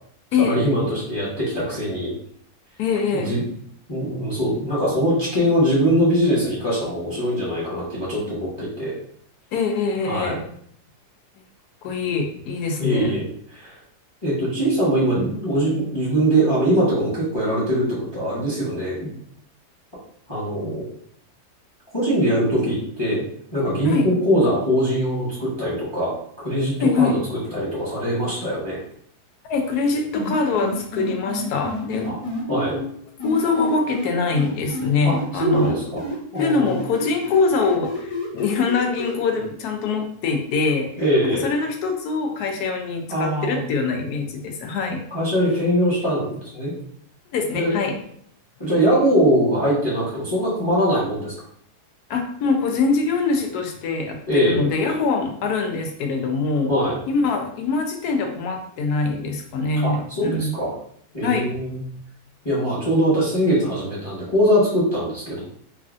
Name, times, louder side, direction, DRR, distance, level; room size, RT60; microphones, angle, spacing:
voice 1, 0.4-2.1 3.1-3.4 3.9-8.9 10.0-10.4 12.8-13.2 13.5-13.8 14.2-19.1 20.3-20.9 21.9-23.2 23.5-27.2 27.5-28.8 32.1-32.2 32.5-32.8 35.0-35.1 35.4-36.0 36.3-36.8 41.0-41.5 43.1-43.6 45.1-46.7 47.5-47.7 48.6-51.3 54.3-54.7 56.7-57.0 59.8-60.7 61.1-61.8 62.4-65.4, equal, 20° left, -7 dB, 0.9 m, -22 dB
voice 2, 2.8-3.3 9.5-10.4 11.8-13.1 23.8-24.1 26.8-27.1 29.4-32.1 32.5-32.8 33.2-35.8 36.4-40.9 41.4-45.0 47.3-47.9 52.1-56.7 57.1-60.6 61.2-61.5, left 4 dB, 75° left, 3 dB, 1.1 m, -23 dB
sound 1, 30.1-32.4 33.2-35.2 35.5-39.1, left 1 dB, 60° left, 0.3 m, -30 dB
3.2 x 2.4 x 2.4 m, 0.64 s
omnidirectional pair, 1.7 m